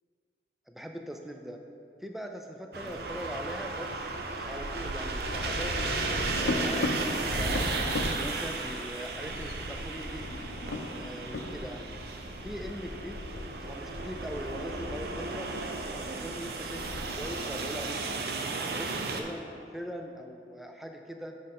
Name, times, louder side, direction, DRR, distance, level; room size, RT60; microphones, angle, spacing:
voice 1, 0.7-1.6 2.0-4.0 4.4-5.8 6.4-10.3 11.0-12.0 12.4-13.2 13.6-15.5 16.0-18.2 18.7-21.4, equal, ahead, 3 dB, 0.3 m, -41 dB
sound 1, 2.7-19.2, right 3 dB, 60° right, 0.5 m, -35 dB
sound 2, 5.2-17.3, left 1 dB, 80° left, 0.6 m, -36 dB
7.7 x 5.3 x 3.5 m, 2.6 s
head